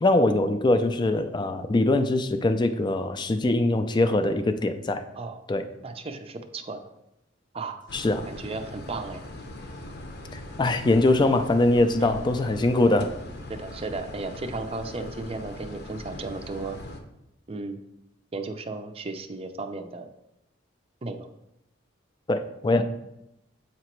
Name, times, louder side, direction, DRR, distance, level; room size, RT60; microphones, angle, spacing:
voice 1, 0.0-5.0 5.5-5.7 7.9-8.3 10.3-13.1 22.3-22.8, left 2 dB, 25° left, 9 dB, 0.4 m, -22 dB
voice 2, 5.8-6.8 7.5-7.8 8.3-9.2 12.0-12.2 13.5-16.8 17.5-17.8 18.3-20.1 21.0-21.3, right 3 dB, 30° right, 7 dB, 0.5 m, -35 dB
sound 1, 7.9-17.0, left 1 dB, 60° left, 0.8 m, -41 dB
8.3 x 3.0 x 4.5 m, 0.86 s
head